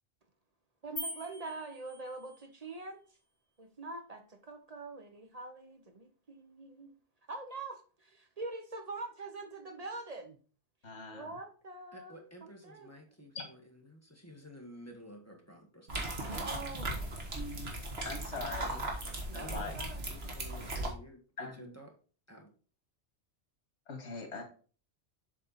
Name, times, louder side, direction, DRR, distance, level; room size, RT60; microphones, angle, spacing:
voice 1, 0.8-3.0 3.6-6.9 7.3-10.4 11.1-12.9 13.2-13.3 16.3-17.4 18.3-18.9 19.3-20.0, right 3 dB, 35° right, 6 dB, 0.9 m, -44 dB
sound 1, 1.0-2.5, left 1 dB, 45° left, 3.1 m, -43 dB
voice 2, 10.8-11.4 13.3-13.5 17.3-17.7 18.0-18.8 19.3-19.8 20.2-20.4 21.4-21.8 23.9-24.4, left 3 dB, 85° left, 3 dB, 2.1 m, -42 dB
voice 3, 11.9-16.1 19.4-21.9 22.3-22.5, equal, 15° left, 1 dB, 1.4 m, -52 dB
sound 2, 15.9-20.9, right 1 dB, 65° right, 1.7 m, -38 dB
7.5 x 4.4 x 4.0 m, 0.39 s
omnidirectional pair, 1.1 m